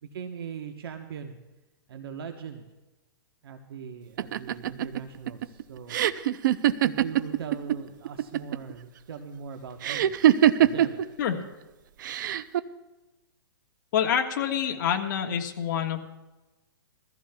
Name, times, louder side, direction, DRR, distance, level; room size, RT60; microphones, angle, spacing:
voice 1, 0.0-1.4 1.9-2.6 3.4-6.0 6.8-10.1 10.6-11.0, right 7 dB, 70° right, 5 dB, 1.1 m, -40 dB
sound 1, 4.2-7.8 8.0-8.7 9.8-11.0 12.0-12.6, right 11 dB, 55° right, 0.5 m, -22 dB
voice 2, 13.9-16.0, left 8 dB, 50° left, 3 dB, 1.6 m, -26 dB
22.5 x 14.5 x 2.3 m, 1.1 s
hypercardioid pair, 155°, 13 cm